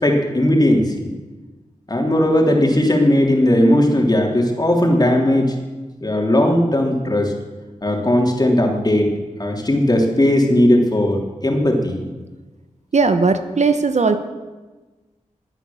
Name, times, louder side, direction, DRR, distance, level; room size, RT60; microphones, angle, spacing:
voice 1, 0.0-1.1 1.9-5.5 6.0-7.3 7.8-9.1 9.4-12.0, left 1 dB, 30° left, 1 dB, 3.3 m, -17 dB
voice 2, 12.9-14.2, right 4 dB, 65° right, 9 dB, 1.1 m, -17 dB
19.5 x 9.3 x 7.1 m, 1.2 s
wide cardioid pair, 60°, 13 cm